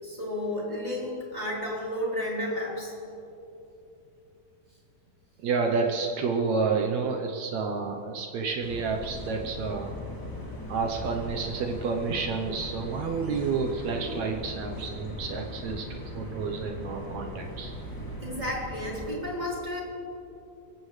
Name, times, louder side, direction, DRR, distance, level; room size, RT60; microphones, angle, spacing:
voice 1, 0.0-2.9 18.2-19.8, left 1 dB, 10° right, -5 dB, 3.5 m, -32 dB
voice 2, 5.4-9.9 10.4-17.7, right 4 dB, 75° right, 2 dB, 1.7 m, -30 dB
sound 1, 8.6-19.1, left 1 dB, 10° left, 1.1 m, -39 dB
23.5 x 16.0 x 3.3 m, 2.9 s
omnidirectional pair, 4.3 m